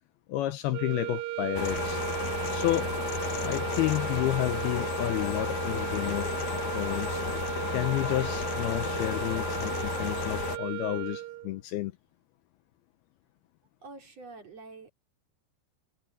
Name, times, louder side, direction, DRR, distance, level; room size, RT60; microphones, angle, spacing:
voice 1, 0.3-2.0 2.5-2.9 3.4-6.3 6.7-7.2 7.7-11.9, left 15 dB, 80° left, 2.4 m, -31 dB
sound 1, 0.7-11.6, right 16 dB, 80° right, 2.9 m, -36 dB
sound 2, 1.5-10.6, left 7 dB, 55° left, 2.5 m, -33 dB
voice 2, 13.8-14.9, right 3 dB, 40° right, 4.4 m, -46 dB
omnidirectional pair, 4.9 m